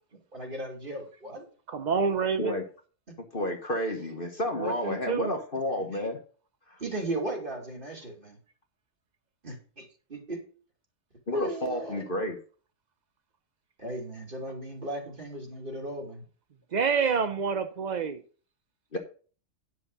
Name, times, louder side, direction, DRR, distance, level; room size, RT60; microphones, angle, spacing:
voice 1, 0.3-1.5 5.9-6.0 6.8-8.4 9.4-10.4 11.3-12.1 13.8-16.3, right 1 dB, 30° right, 1 dB, 2.8 m, -36 dB
voice 2, 1.7-2.6 4.6-5.3 16.7-18.2, right 6 dB, 75° right, 9 dB, 0.4 m, -28 dB
voice 3, 3.3-6.2 6.7-6.8 11.3-12.4 18.9-19.0, left 1 dB, 35° left, 3 dB, 1.4 m, -31 dB
9.9 x 6.3 x 5.3 m, 0.40 s
omnidirectional pair, 1.7 m